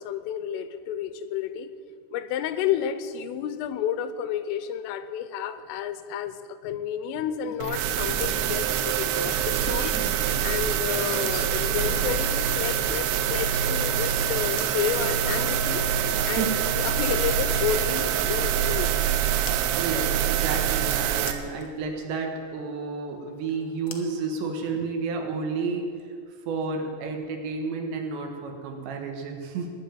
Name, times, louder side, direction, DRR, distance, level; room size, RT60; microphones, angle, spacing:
voice 1, 0.0-1.7 2.1-10.0 10.4-15.8 16.3-19.1, left 9 dB, 90° left, 12 dB, 3.5 m, -31 dB
sound 1, 7.4-13.4 14.6-14.8 16.7-16.8 19.5-19.6 21.3-21.7 23.9-24.9, left 5 dB, 75° left, 1.8 m, -42 dB
sound 2, 7.6-21.3, right 9 dB, 85° right, 3.3 m, -25 dB
voice 2, 16.2-16.6 19.8-25.9 26.5-29.7, right 4 dB, 70° right, 3 dB, 3.6 m, -31 dB
20.5 x 7.2 x 9.2 m, 2.1 s
omnidirectional pair, 5.7 m